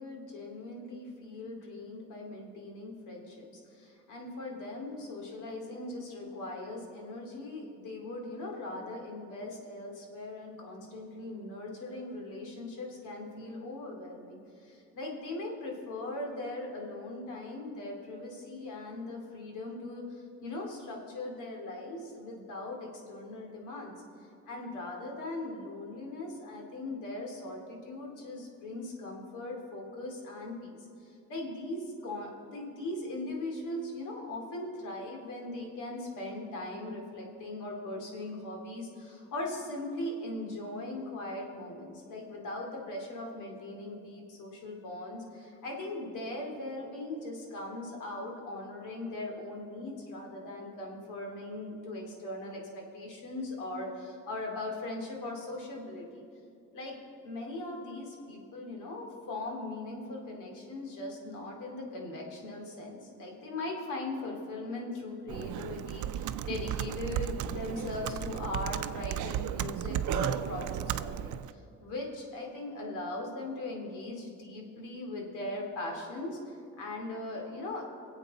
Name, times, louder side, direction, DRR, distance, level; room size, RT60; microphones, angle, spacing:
voice 1, 0.0-23.9 24.5-56.2 56.7-56.9 57.2-77.9, left 2 dB, 90° left, 0 dB, 2.5 m, -39 dB
Computer keyboard, 65.3-71.5, right 11 dB, 75° right, 0.5 m, -34 dB
22.5 x 8.1 x 4.1 m, 2.5 s
cardioid pair, 90°, 30 cm